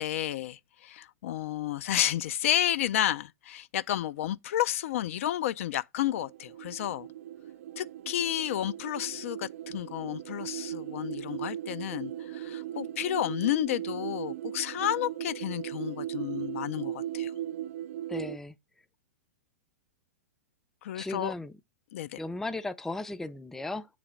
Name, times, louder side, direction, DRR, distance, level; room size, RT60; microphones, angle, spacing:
voice 1, 0.0-7.1 7.8-17.3 20.8-21.3 21.9-22.2, left 12 dB, 65° left, 0.4 m, -31 dB
sound 1, 6.0-18.4, right 12 dB, 65° right, 0.4 m, -38 dB
voice 2, 18.1-18.6 20.9-21.5 22.2-23.9, left 2 dB, 5° left, 0.4 m, -36 dB
7.0 x 3.3 x 5.0 m
hypercardioid pair, 120°, 8 cm